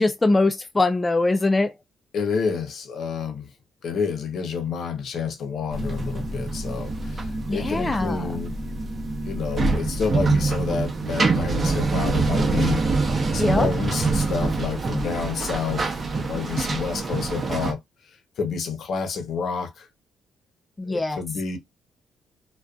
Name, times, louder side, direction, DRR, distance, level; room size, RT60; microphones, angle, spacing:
voice 1, 0.0-1.7 7.5-8.4 13.4-13.7 20.8-21.2, left 2 dB, 20° left, 0.3 m, -22 dB
voice 2, 2.1-3.5 3.8-8.5 9.3-15.9 16.1-17.8 18.4-19.9 20.9-21.6, left 5 dB, 65° left, 0.7 m, -29 dB
sound 1, 5.7-17.7, right 3 dB, 35° right, 0.7 m, -25 dB
2.4 x 2.2 x 2.3 m
cardioid pair, 90°, 0 cm